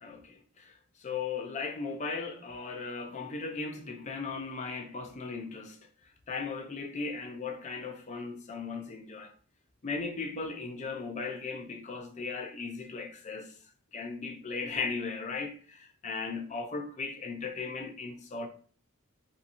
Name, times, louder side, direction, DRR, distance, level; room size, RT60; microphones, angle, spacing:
voice 1, 0.0-5.8 6.3-9.3 9.8-13.5 13.9-18.5, left 4 dB, 35° left, 0.4 m, -37 dB
2.7 x 2.4 x 2.6 m
head